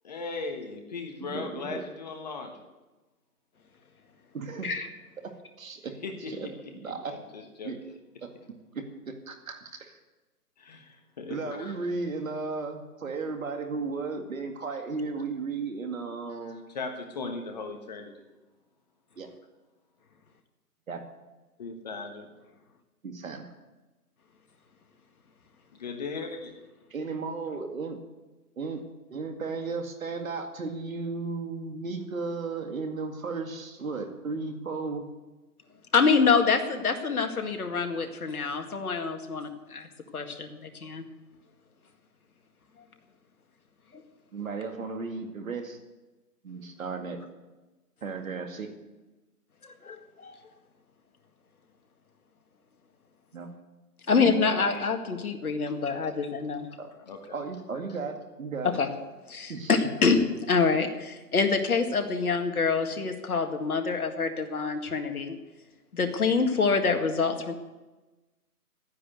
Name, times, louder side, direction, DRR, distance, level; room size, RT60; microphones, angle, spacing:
voice 1, 0.0-2.6 6.0-7.8 10.6-11.7 16.4-18.2 21.6-22.3 25.7-26.5 57.1-57.4, left 4 dB, 25° left, 4 dB, 1.3 m, -38 dB
voice 2, 1.2-1.8 4.3-4.7 5.6-5.9 6.3-6.5 6.8-7.1 7.6-7.8 8.7-10.0 11.3-16.6 19.2-19.3 20.9-21.0 23.0-23.4 26.9-28.0 28.6-28.8 29.1-35.1 44.3-45.8 46.4-47.2 48.0-48.7 53.3-53.5 54.2-54.8 56.8-56.9 57.3-58.8 59.5-59.7, right 4 dB, 55° right, 5 dB, 2.3 m, -35 dB
voice 3, 35.9-39.9 40.1-41.0 43.9-44.0 49.6-50.3 54.1-56.7 58.8-58.9 59.3-65.4 65.9-67.5, left 5 dB, 65° left, 5 dB, 2.0 m, -26 dB
12.0 x 9.8 x 8.0 m, 1.1 s
hypercardioid pair, 160°, 47 cm